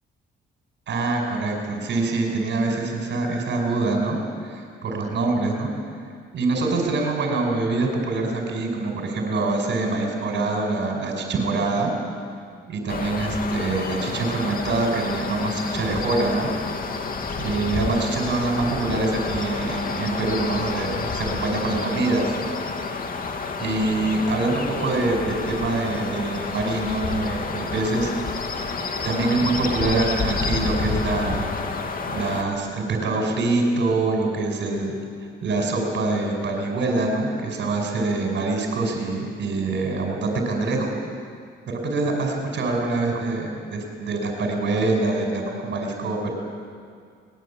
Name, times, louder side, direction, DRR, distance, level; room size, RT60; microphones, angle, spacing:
voice 1, 0.9-4.2 4.4-5.7 6.3-11.9 12.7-16.5 17.4-22.3 23.6-28.1 29.0-31.4 32.1-34.9 35.4-41.0 41.7-46.3, right 2 dB, 65° right, 1 dB, 5.2 m, -25 dB
sound 1, 12.9-32.4, left 4 dB, 45° left, 2.6 m, -29 dB
22.0 x 20.5 x 8.6 m, 2.1 s
cardioid pair, 90°, 20 cm